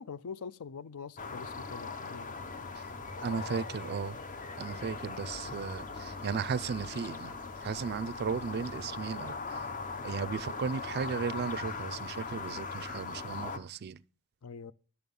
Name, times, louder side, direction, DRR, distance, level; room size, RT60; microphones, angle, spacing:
voice 1, 0.0-2.3 5.5-5.6 14.4-14.7, left 5 dB, 70° left, 0.5 m, -44 dB
sound 1, 1.2-13.6, left 4 dB, 35° left, 0.7 m, -40 dB
voice 2, 3.2-4.2 4.6-9.7 10.0-14.0, right 6 dB, 45° right, 0.4 m, -36 dB
11.0 x 6.9 x 5.3 m
head